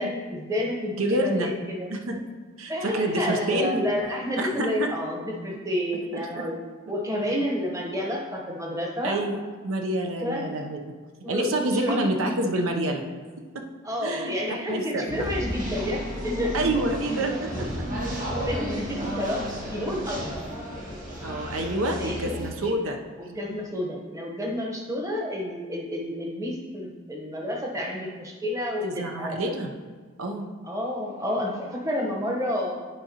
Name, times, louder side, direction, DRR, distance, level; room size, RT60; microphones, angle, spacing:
voice 1, 0.0-1.9 2.7-6.6 6.9-9.2 10.2-10.4 11.2-12.1 13.8-16.6 18.3-20.4 21.9-22.3 22.6-22.8 23.2-29.5 30.6-32.8, left 1 dB, 15° right, -1 dB, 0.9 m, -30 dB
voice 2, 1.0-1.5 1.9-2.2 2.6-3.9 4.4-4.9 6.1-6.4 9.0-9.4 9.6-10.8 11.3-13.0 13.5-13.6 14.0-15.4 16.5-17.7 21.2-23.0 28.8-29.7 30.2-30.5, right 1 dB, 80° right, 3 dB, 0.7 m, -28 dB
sound 1, 15.1-22.5, equal, 40° right, 1.7 m, -32 dB
11.0 x 4.9 x 2.9 m, 1.5 s
head